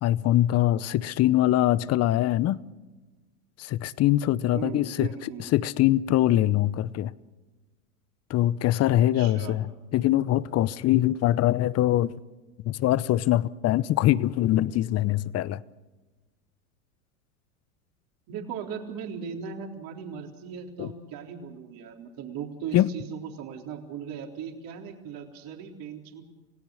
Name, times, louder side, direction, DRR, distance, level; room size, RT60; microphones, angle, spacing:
voice 1, 0.0-2.6 3.6-5.1 5.5-7.1 8.3-9.6 9.9-12.1 12.6-15.6 20.8-20.9 22.7-22.9, left 14 dB, 35° left, 0.8 m, -23 dB
voice 2, 4.5-5.4 9.1-9.6 18.3-26.2, right 7 dB, 50° right, 3.8 m, -38 dB
29.0 x 17.5 x 6.4 m
hypercardioid pair, 100°, 44 cm